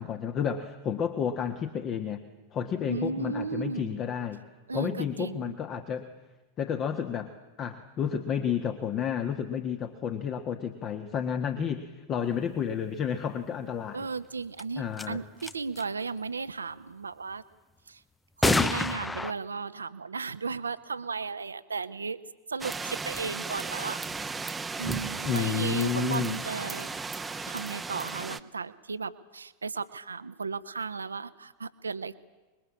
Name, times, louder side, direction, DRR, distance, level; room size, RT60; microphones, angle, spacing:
voice 1, 0.0-2.2 2.5-4.4 4.7-6.0 6.6-7.3 7.6-14.1 14.8-15.2 25.2-26.4, left 8 dB, 30° left, 8 dB, 1.6 m, -31 dB
voice 2, 2.9-4.0 4.7-5.6 13.9-17.4 17.9-18.0 18.4-24.0 24.8-26.9 27.5-32.1, right 4 dB, 75° right, 14 dB, 1.0 m, -35 dB
sound 1, 14.6-14.7 15.0-15.1 15.4-15.8 18.4-19.3, left 2 dB, 10° left, 0.7 m, -26 dB
sound 2, 22.6-28.4, right 4 dB, 10° right, 1.0 m, -35 dB
25.0 x 22.0 x 8.5 m, 1.2 s
figure-of-eight pair, 90°, 0 cm